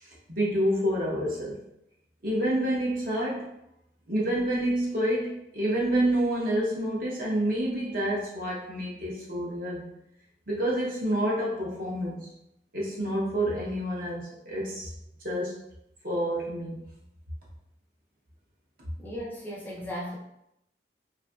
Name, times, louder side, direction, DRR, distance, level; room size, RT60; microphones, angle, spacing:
voice 1, 0.0-1.6 2.2-3.5 4.1-9.9 10.5-12.3 12.7-14.9 15.2-15.6 16.0-16.8, right 1 dB, 50° right, -5 dB, 0.7 m, -28 dB
voice 2, 19.0-20.2, equal, 10° left, -4 dB, 0.4 m, -36 dB
2.5 x 2.4 x 2.3 m, 0.81 s
head